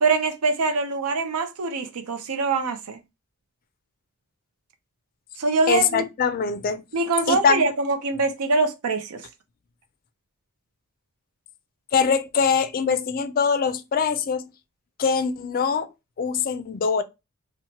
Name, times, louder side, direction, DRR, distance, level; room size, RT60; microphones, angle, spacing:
voice 1, 0.0-3.0 5.4-6.0 6.9-9.2, right 4 dB, 85° right, 0.5 m, -23 dB
voice 2, 5.7-6.8 7.3-7.6 11.9-14.4 15.0-15.9 16.2-17.0, left 6 dB, 40° left, 0.3 m, -23 dB
2.9 x 2.1 x 2.8 m
head